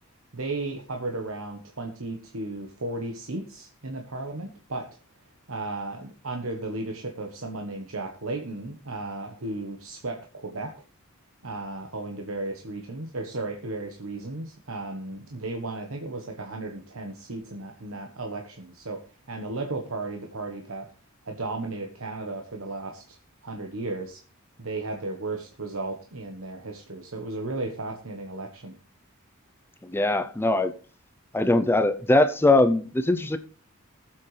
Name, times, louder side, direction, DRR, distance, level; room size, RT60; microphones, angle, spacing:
voice 1, 0.3-4.9 5.5-10.7 11.4-19.0 19.3-20.9 21.3-23.2 23.4-24.2 24.6-28.7, right 2 dB, 70° right, 1.2 m, -34 dB
voice 2, 29.9-30.7 31.3-33.4, left 2 dB, 10° left, 0.5 m, -21 dB
20.0 x 7.7 x 3.3 m
head